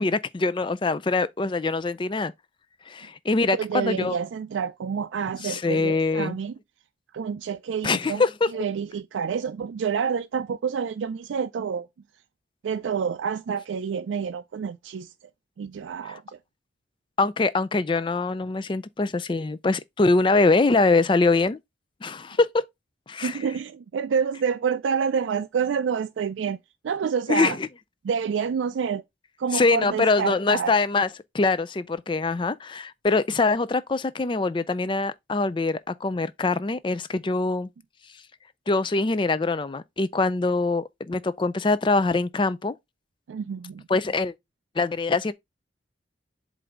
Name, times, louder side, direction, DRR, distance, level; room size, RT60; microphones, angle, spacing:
voice 1, 0.0-2.3 2.9-4.2 5.4-6.3 7.8-8.3 17.2-21.6 22.0-22.6 23.1-23.4 27.3-27.7 29.5-31.1 31.3-37.7 38.7-42.8 43.9-44.3 44.8-45.3, left 3 dB, 25° left, 0.4 m, -23 dB
voice 2, 3.6-6.5 7.1-8.2 8.5-11.9 12.6-15.1 15.6-16.4 23.2-26.6 26.8-27.6 28.0-29.0 29.4-30.7 43.3-43.9, right 6 dB, 90° right, 0.4 m, -28 dB
7.7 x 2.6 x 4.9 m
head